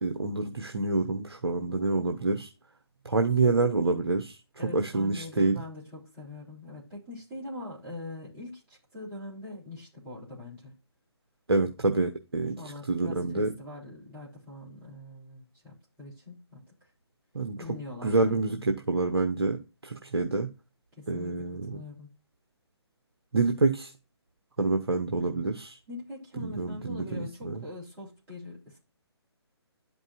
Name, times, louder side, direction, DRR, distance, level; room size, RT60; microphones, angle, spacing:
voice 1, 0.0-2.5 3.0-4.4 4.7-5.6 11.5-12.6 12.9-13.5 17.3-17.6 18.0-20.5 21.1-21.8 23.3-23.9 24.6-25.8 26.4-27.6, right 3 dB, 65° right, 1.0 m, -27 dB
voice 2, 4.6-10.7 12.6-16.6 17.6-18.4 21.0-21.3 21.7-22.1 25.9-28.8, left 2 dB, 15° right, 3.3 m, -42 dB
11.5 x 5.2 x 2.5 m
figure-of-eight pair, 140°, 14 cm